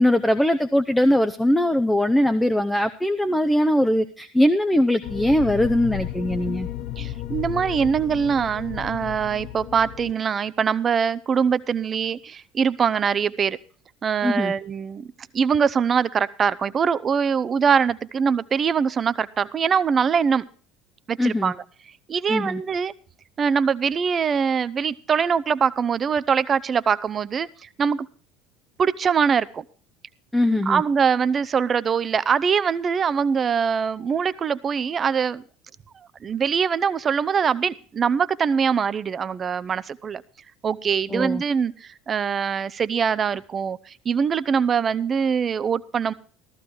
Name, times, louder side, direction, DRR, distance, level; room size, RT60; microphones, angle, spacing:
voice 1, 0.0-6.7 14.2-14.5 21.2-21.5 22.3-22.6 30.3-30.8 41.1-41.4, left 1 dB, 5° left, 8 dB, 0.7 m, -21 dB
sound 1, 5.0-10.1, left 13 dB, 55° left, 0.7 m, -33 dB
voice 2, 7.0-13.6 14.0-15.1 15.3-20.4 21.1-21.6 22.1-22.9 23.4-28.1 28.8-29.6 30.7-35.4 36.0-40.2 40.6-46.1, right 6 dB, 35° right, 17 dB, 0.6 m, -23 dB
14.5 x 14.0 x 3.2 m, 0.43 s
figure-of-eight pair, 65°, 0 cm